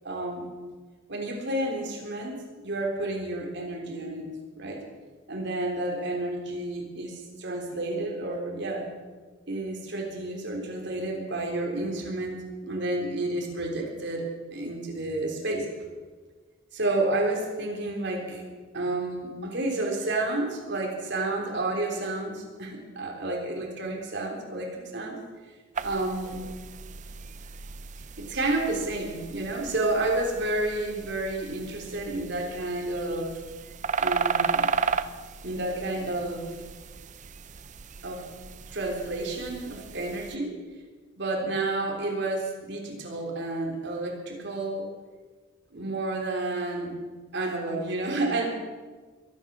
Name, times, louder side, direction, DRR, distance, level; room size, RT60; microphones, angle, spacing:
voice 1, 0.0-0.5 1.1-4.8 5.3-8.9 9.5-15.7 16.7-18.4 18.7-25.2 25.8-26.4 28.2-33.4 34.0-34.7 35.4-36.5 38.0-38.3 38.7-40.6 41.2-44.9 45.7-46.9 47.3-48.4, right 2 dB, 60° right, 0 dB, 3.6 m, -30 dB
sound 1, 25.7-40.4, right 5 dB, 40° right, 0.6 m, -35 dB
22.5 x 10.0 x 6.1 m, 1.4 s
head